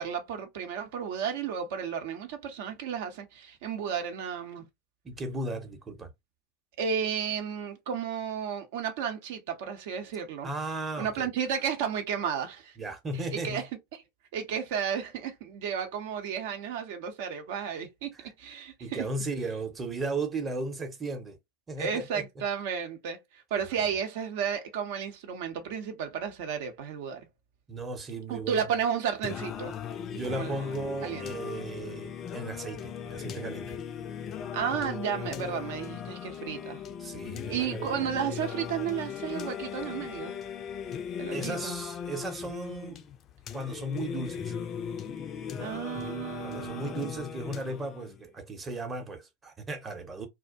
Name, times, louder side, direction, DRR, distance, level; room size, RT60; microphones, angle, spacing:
voice 1, 0.0-4.7 6.8-10.5 11.0-12.7 13.3-13.7 13.9-14.0 14.3-19.0 21.8-27.2 28.3-29.8 30.2-30.6 31.0-31.3 34.5-36.8 37.5-40.3 41.2-41.7 45.6-47.1, right 7 dB, 60° right, 0.7 m, -33 dB
voice 2, 5.0-6.1 10.4-11.3 12.8-13.6 18.1-18.3 18.8-21.4 21.7-22.2 27.7-28.7 30.1-33.8 37.0-38.1 41.3-43.0 43.5-44.5 45.5-45.8 46.4-50.3, right 2 dB, 20° right, 0.8 m, -36 dB
Singing, 29.2-48.2, left 7 dB, 35° left, 0.4 m, -38 dB
2.4 x 2.0 x 2.5 m
hypercardioid pair, 85°, 0 cm